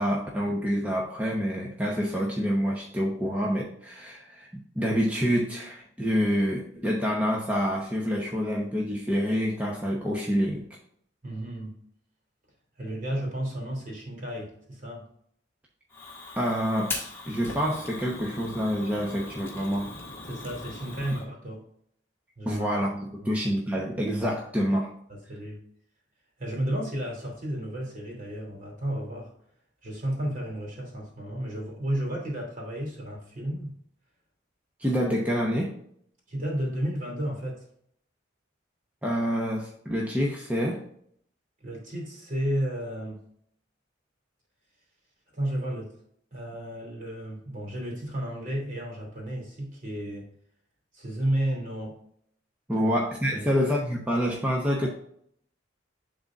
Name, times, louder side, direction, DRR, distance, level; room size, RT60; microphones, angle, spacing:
voice 1, 0.0-4.5 4.7-10.6 16.4-16.9 17.3-19.9 22.5-22.9 23.2-24.9 34.8-35.8 39.0-40.8 52.7-54.9, equal, 10° right, -3 dB, 0.9 m, -27 dB
voice 2, 11.2-11.8 12.8-15.0 20.2-21.6 22.4-22.6 23.2-23.4 25.1-25.6 26.4-29.3 29.8-33.7 36.3-37.6 41.6-43.2 45.3-45.9 46.3-50.2 50.9-52.0 52.8-52.9 53.3-53.6 54.8-54.9, right 1 dB, 45° right, -2 dB, 2.8 m, -32 dB
Fire, 15.9-21.2, left 2 dB, 10° left, 1.5 m, -39 dB
11.0 x 3.9 x 2.4 m, 0.66 s
head